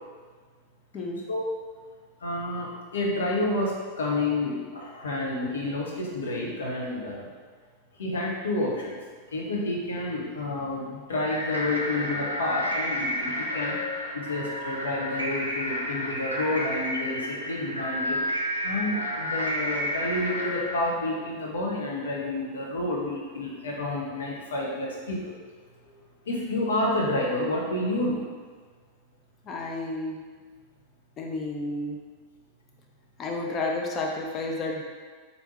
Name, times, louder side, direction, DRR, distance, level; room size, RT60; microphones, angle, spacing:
voice 1, 2.2-7.3 8.0-9.0 9.3-13.8 14.1-18.2 18.6-25.3 26.3-28.2, left 2 dB, 65° left, -2 dB, 0.7 m, -29 dB
sound 1, 11.2-20.8, left 1 dB, 90° right, 0.4 m, -31 dB
voice 2, 29.5-30.2 31.2-32.0 33.2-34.8, left 2 dB, 30° left, 0 dB, 0.5 m, -31 dB
3.3 x 2.6 x 3.1 m, 1.5 s
figure-of-eight pair, 90°, 0 cm